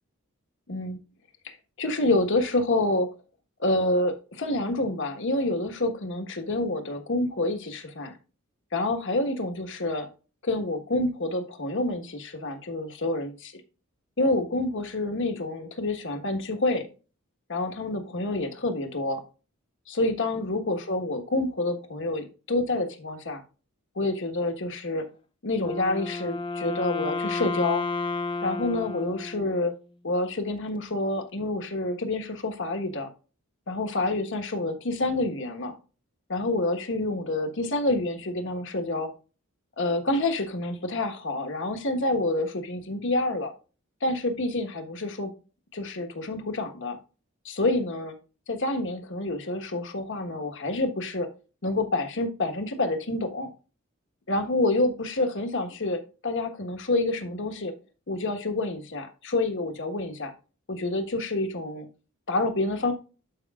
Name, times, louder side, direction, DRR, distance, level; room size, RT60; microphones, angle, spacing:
voice 1, 0.7-1.0 1.4-3.1 3.6-8.1 8.7-10.1 10.4-13.5 14.2-16.9 17.5-19.2 19.9-23.4 23.9-25.0 25.4-27.8 28.4-29.7 30.0-33.1 33.7-35.7 36.3-39.1 39.8-43.5 44.0-45.3 45.7-47.0 47.4-48.2 48.5-51.3 51.6-53.5 54.3-57.7 58.1-60.3 60.7-61.9 62.3-62.9, left 2 dB, 60° left, 5 dB, 1.3 m, -28 dB
Wind instrument woodwind instrument, 25.6-29.8, left 3 dB, 25° left, 0.4 m, -32 dB
11.5 x 5.3 x 2.4 m, 0.33 s
head